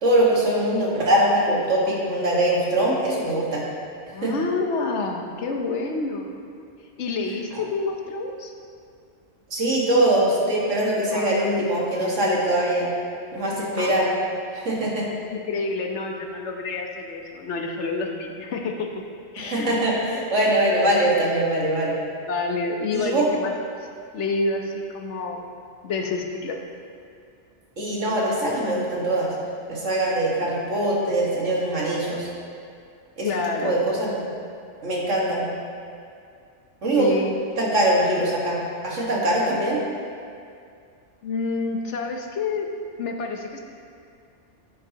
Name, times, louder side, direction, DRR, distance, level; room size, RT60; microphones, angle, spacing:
voice 1, 0.0-3.6 4.2-4.3 7.5-7.6 9.5-12.9 13.3-14.1 14.5-15.1 19.4-22.0 22.9-23.3 27.8-29.3 29.7-32.3 33.2-33.4 33.6-34.2 34.8-35.5 36.8-37.1 37.6-39.8, right 1 dB, 85° right, -4 dB, 2.0 m, -22 dB
voice 2, 4.1-6.4 7.0-8.5 11.1-11.4 13.7-13.9 15.3-18.9 19.3-19.8 22.3-23.5 24.1-25.5 25.8-26.6 33.2-33.8 36.9-37.3 41.2-42.7 43.0-43.6, left 3 dB, 70° left, 3 dB, 1.1 m, -28 dB
10.0 x 9.9 x 2.9 m, 2.3 s
omnidirectional pair, 1.2 m